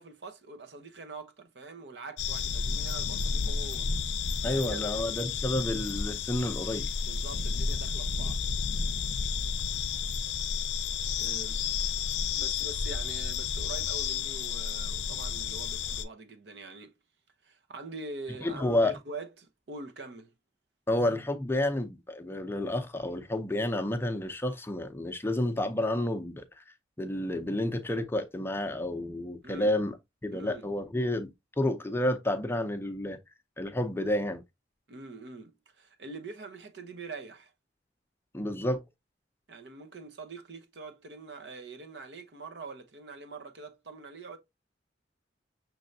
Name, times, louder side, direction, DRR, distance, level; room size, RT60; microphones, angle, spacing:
voice 1, 0.0-4.1 4.4-4.8 7.0-8.4 11.2-11.6 12.4-16.9 17.4-20.3 29.4-29.8 30.3-30.7 34.9-37.5 39.5-44.4, right 3 dB, 70° right, 0.9 m, -44 dB
sound 1, 2.2-16.1, left 6 dB, 90° left, 0.5 m, -31 dB
voice 2, 4.4-6.9 18.4-18.9 20.9-26.6 27.0-29.9 30.2-33.2 33.6-34.4 38.3-38.8, left 1 dB, 15° left, 0.6 m, -30 dB
6.1 x 3.3 x 2.6 m
head